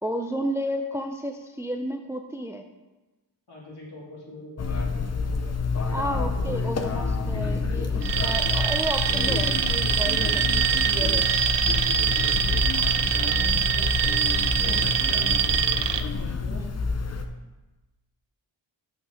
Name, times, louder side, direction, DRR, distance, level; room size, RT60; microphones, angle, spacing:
voice 1, 0.0-2.6 5.9-11.4 14.7-14.9 16.5-16.7, equal, 5° right, 5 dB, 0.4 m, -32 dB
voice 2, 3.5-6.4 13.2-13.9 14.4-15.3 16.0-16.7, left 2 dB, 55° left, -5 dB, 3.2 m, -45 dB
sound 1, 4.6-17.3, left 4 dB, 35° left, 0.7 m, -27 dB
Alarm, 8.0-16.0, right 9 dB, 65° right, 0.6 m, -24 dB
7.0 x 6.1 x 6.4 m, 1.1 s
wide cardioid pair, 115°, 46 cm